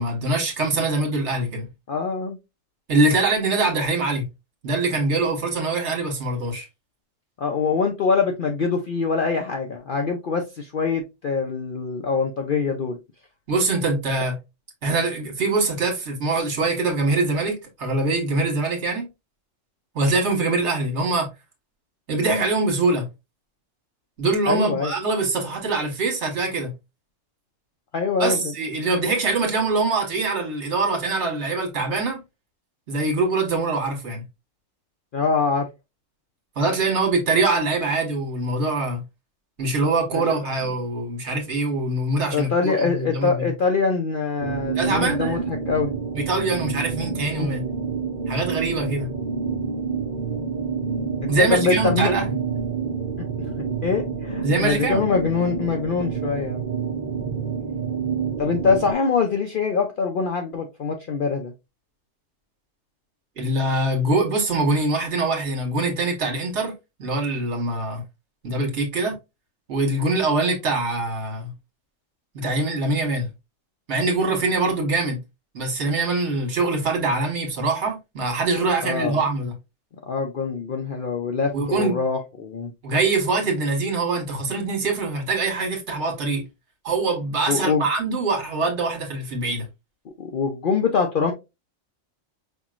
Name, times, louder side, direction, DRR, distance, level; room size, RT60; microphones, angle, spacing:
voice 1, 0.0-1.6 2.9-4.2 4.6-6.7 13.5-14.4 14.8-19.1 19.9-21.3 22.1-23.0 24.2-26.7 28.2-32.2 32.9-34.2 36.6-39.0 39.6-43.5 44.7-45.5 46.1-47.6 48.3-49.1 51.3-52.2 54.4-55.0 63.4-66.7 67.0-68.0 68.4-69.1 69.7-71.5 72.3-73.3 73.9-75.2 75.5-79.5 81.5-82.0 82.8-86.4 86.8-89.7, right 3 dB, 60° right, 1.6 m, -23 dB
voice 2, 1.9-2.4 7.4-13.0 24.5-24.9 27.9-28.5 35.1-35.7 40.1-40.2 42.3-45.9 47.4-47.7 51.2-52.3 53.4-56.7 58.4-61.5 78.8-79.2 80.1-82.7 87.5-87.8 90.2-91.3, left 5 dB, 55° left, 0.6 m, -24 dB
sound 1, 44.4-58.9, right 6 dB, 40° right, 0.8 m, -28 dB
5.4 x 2.9 x 2.4 m
omnidirectional pair, 1.3 m